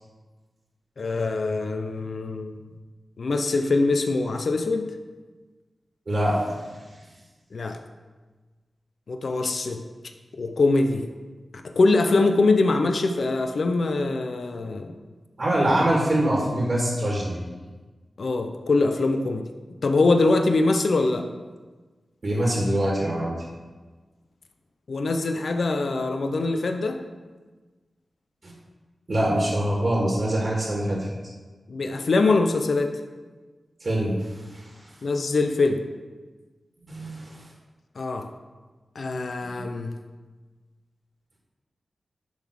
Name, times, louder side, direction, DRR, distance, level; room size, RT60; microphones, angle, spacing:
voice 1, 1.0-2.6 3.2-4.9 7.5-7.8 9.1-9.8 10.4-11.1 11.7-14.9 18.2-19.4 19.8-21.3 24.9-27.0 31.7-33.0 35.0-35.8 38.0-38.3 39.0-39.9, left 3 dB, 75° left, 6 dB, 0.7 m, -23 dB
voice 2, 6.1-6.6 15.4-17.4 22.2-23.3 28.4-28.5 29.1-31.1 33.8-34.2 34.5-34.6 36.9-37.4 39.5-39.6, right 1 dB, 55° right, -2 dB, 2.1 m, -24 dB
10.5 x 4.0 x 6.4 m, 1.3 s
cardioid pair, 60°, 0 cm